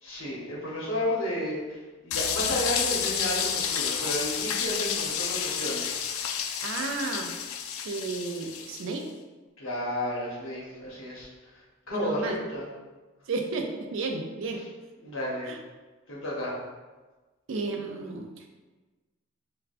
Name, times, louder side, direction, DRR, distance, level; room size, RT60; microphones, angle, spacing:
voice 1, 0.0-6.0 9.6-11.3 11.9-12.7 15.0-15.5 16.1-16.6, left 1 dB, 70° left, -5 dB, 1.0 m, -32 dB
sound 1, 2.1-8.9, left 8 dB, 85° left, 0.3 m, -30 dB
voice 2, 6.6-7.3 7.8-9.1 11.9-12.4 13.3-14.6 15.5-15.6 17.5-18.4, right 3 dB, 65° right, 3 dB, 0.4 m, -32 dB
4.6 x 2.3 x 2.4 m, 1.3 s
head